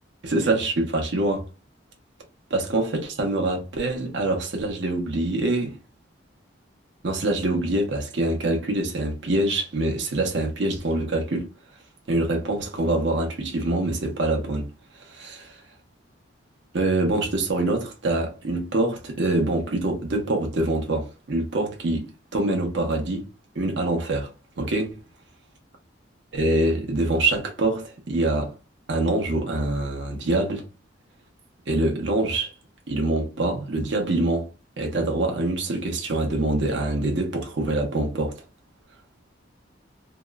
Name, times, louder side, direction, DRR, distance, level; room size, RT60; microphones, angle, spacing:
voice 1, 0.2-1.5 2.5-5.8 7.0-11.5 12.1-14.7 15.1-15.5 16.7-23.3 23.5-24.3 24.6-25.0 26.3-28.5 28.9-30.6 31.7-32.5 32.9-34.5 34.8-38.4, right 2 dB, 65° right, 0.7 m, -25 dB
2.8 x 2.0 x 2.2 m
head